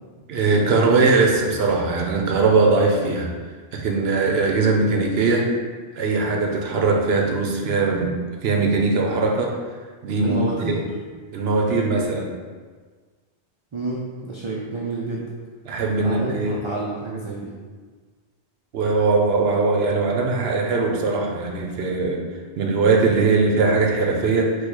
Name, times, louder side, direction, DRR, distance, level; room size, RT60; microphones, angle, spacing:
voice 1, 0.3-3.3 3.7-5.5 5.9-8.1 8.4-9.6 10.0-10.4 10.7-10.8 11.3-12.3 15.6-16.6 18.7-22.2 22.6-24.6, right 3 dB, 65° right, 1 dB, 0.9 m, -20 dB
voice 2, 10.2-10.8 13.7-15.3 16.0-17.5, right 3 dB, 45° right, -4 dB, 0.4 m, -29 dB
4.6 x 2.3 x 4.7 m, 1.5 s
omnidirectional pair, 1.2 m